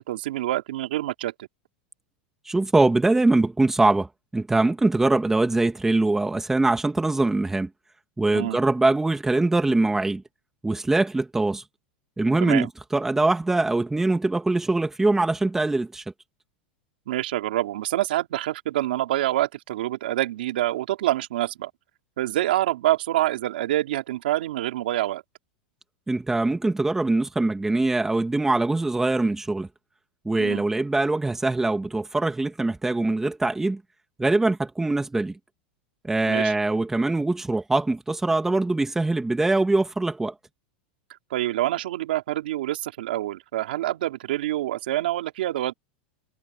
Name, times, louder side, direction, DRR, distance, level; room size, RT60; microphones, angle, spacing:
voice 1, 0.0-1.5 8.3-8.6 12.4-12.7 17.1-21.7 22.2-25.2 30.4-30.6 36.2-36.6 41.3-45.7, right 14 dB, 80° right, 3.3 m, -26 dB
voice 2, 2.5-4.1 4.3-7.7 8.2-10.2 10.6-11.6 12.2-16.0 26.1-29.7 30.2-33.8 34.2-35.4 36.0-40.3, right 2 dB, 5° right, 2.4 m, -23 dB
supercardioid pair, 130°, 5 cm